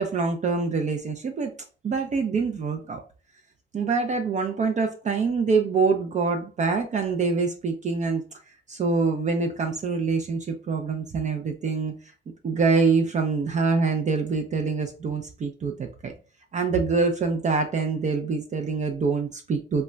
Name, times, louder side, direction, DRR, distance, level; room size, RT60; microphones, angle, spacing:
voice 1, 0.0-1.5 1.8-3.0 3.7-8.2 8.7-11.9 12.4-16.1 16.5-19.8, right 4 dB, 35° right, 4 dB, 0.4 m, -25 dB
2.2 x 2.1 x 3.7 m, 0.36 s
cardioid pair, 90°, 20 cm